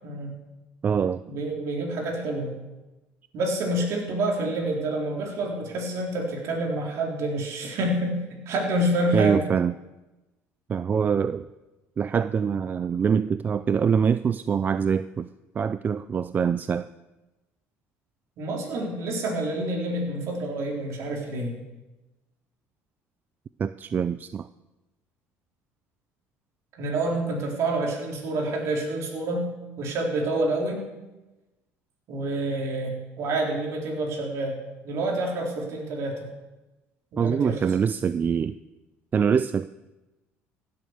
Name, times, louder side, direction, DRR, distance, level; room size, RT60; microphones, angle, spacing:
voice 1, 0.0-0.4 1.3-2.6 3.3-9.5 18.4-21.6 26.7-29.5 29.8-30.8 32.1-34.6 34.8-36.3 37.1-37.6, right 1 dB, 60° right, 0 dB, 4.0 m, -28 dB
voice 2, 0.8-1.2 9.1-9.7 10.7-11.5 12.0-15.3 15.6-16.9 23.6-24.5 37.2-38.5 39.1-39.7, right 7 dB, 30° right, 14 dB, 0.4 m, -24 dB
15.5 x 7.9 x 6.6 m, 1.1 s
supercardioid pair, 100°, 6 cm